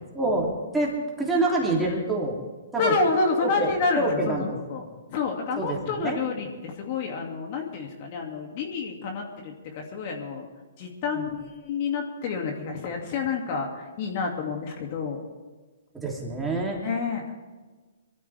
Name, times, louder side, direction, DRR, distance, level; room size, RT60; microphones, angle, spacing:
voice 1, 0.1-2.4 2.7-2.9 3.4-4.5 5.6-6.2 11.1-11.3 15.9-16.8, right 2 dB, 10° right, -2 dB, 3.2 m, -27 dB
voice 2, 2.8-10.5 10.8-15.2 16.8-17.3, left 4 dB, 45° left, 2 dB, 2.5 m, -29 dB
22.5 x 13.5 x 3.6 m, 1.3 s
hypercardioid pair, 130°, 0 cm